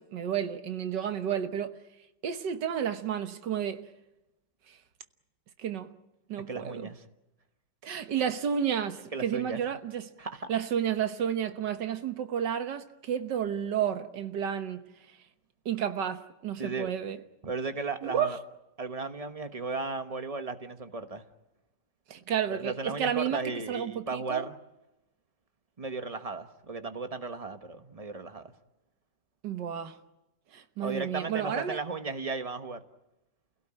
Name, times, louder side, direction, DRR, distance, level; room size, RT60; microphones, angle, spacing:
voice 1, 0.0-1.8 2.2-3.9 4.7-4.8 5.6-6.0 6.3-6.9 7.8-10.1 10.5-14.8 15.7-17.2 18.0-18.4 22.1-24.5 29.4-30.0 30.5-31.8, right 8 dB, 90° right, 1.9 m, -31 dB
voice 2, 6.5-7.0 9.1-9.6 10.2-10.5 16.6-16.9 17.4-18.4 18.8-21.2 22.5-24.5 25.8-28.5 30.8-32.8, right 3 dB, 25° right, 1.2 m, -35 dB
28.5 x 17.0 x 9.0 m
omnidirectional pair, 1.8 m